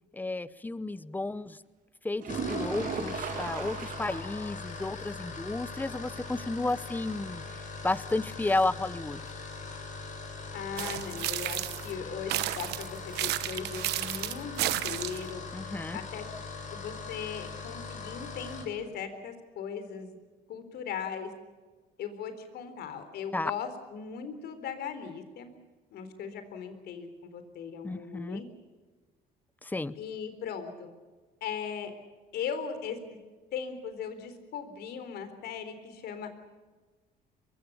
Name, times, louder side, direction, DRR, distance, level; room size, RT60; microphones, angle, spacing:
voice 1, 0.1-1.6 2.0-7.4 7.8-9.2 15.5-16.0 23.3-23.5 27.8-28.4 29.6-29.9, left 2 dB, 10° left, 17 dB, 0.8 m, -32 dB
sound 1, 2.2-18.7, left 4 dB, 50° left, 6.3 m, -41 dB
sound 2, 2.2-4.4 4.8-4.9 5.3-5.4 9.2-9.3, right 6 dB, 55° right, 2.8 m, -36 dB
voice 2, 10.5-15.4 15.9-16.3 16.7-20.2 20.5-21.3 22.0-25.5 25.9-28.4 30.0-30.9 31.4-31.9 32.3-33.0 33.5-36.4, left 7 dB, 70° left, 9 dB, 3.9 m, -38 dB
sound 3, 10.8-11.9 12.3-15.3, right 16 dB, 85° right, 1.0 m, -32 dB
23.0 x 23.0 x 7.1 m, 1.3 s
cardioid pair, 110°, 17 cm